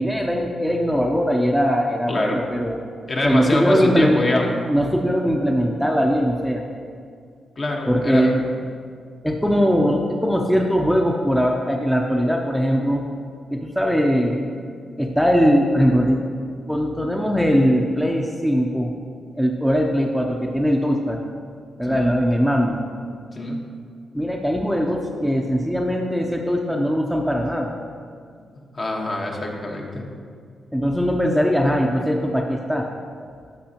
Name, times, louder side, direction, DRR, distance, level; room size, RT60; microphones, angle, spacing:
voice 1, 0.0-2.8 3.2-4.4 4.7-6.6 7.9-8.4 9.2-13.0 13.5-14.5 15.0-16.3 16.7-18.9 19.3-21.2 21.8-22.8 24.1-27.7 30.7-32.9, equal, ahead, 1 dB, 0.6 m, -20 dB
voice 2, 3.1-4.5 7.6-8.3 21.9-22.1 23.4-23.6 28.7-30.0, left 2 dB, 45° left, 0 dB, 1.3 m, -24 dB
11.5 x 6.1 x 2.9 m, 2.2 s
cardioid pair, 80°, 0 cm